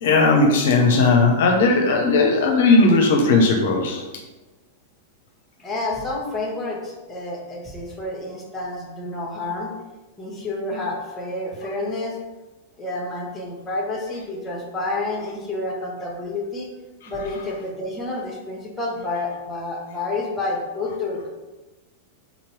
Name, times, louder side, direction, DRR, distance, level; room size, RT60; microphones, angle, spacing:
voice 1, 0.0-4.0, left 3 dB, 65° left, 2 dB, 0.6 m, -17 dB
voice 2, 5.6-9.7 10.2-12.1 12.8-16.7 17.1-21.3, left 2 dB, 15° left, -1 dB, 1.1 m, -29 dB
3.9 x 2.9 x 4.5 m, 1.1 s
figure-of-eight pair, 95°, 0 cm